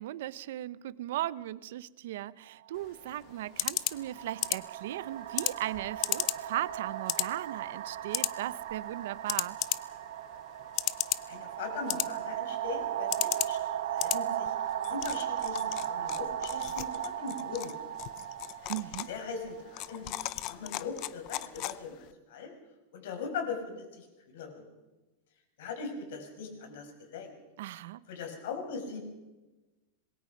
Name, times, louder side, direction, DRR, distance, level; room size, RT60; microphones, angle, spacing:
voice 1, 0.0-9.6 18.7-19.1 27.6-28.0, right 14 dB, 60° right, 0.7 m, -37 dB
sound 1, 2.5-2.6 3.6-20.2, right 11 dB, 80° right, 1.4 m, -37 dB
sound 2, 2.7-22.1, left 17 dB, 30° left, 0.6 m, -37 dB
voice 2, 11.3-17.7 19.1-20.2 20.4-22.5 22.9-24.1 24.3-24.6 25.6-27.3 28.1-29.0, left 5 dB, 60° left, 5.9 m, -40 dB
26.5 x 21.5 x 5.3 m
supercardioid pair, 180°, 0 cm